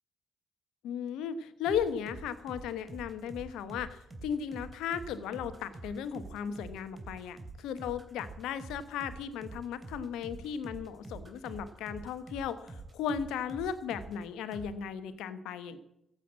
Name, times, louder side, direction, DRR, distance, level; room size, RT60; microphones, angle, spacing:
voice 1, 0.8-15.9, left 8 dB, 80° left, 12 dB, 1.1 m, -36 dB
sound 1, 1.7-14.2 14.5-14.7, right 3 dB, 30° right, 3.2 m, -46 dB
14.5 x 7.9 x 8.5 m, 0.81 s
hypercardioid pair, 45°, 0 cm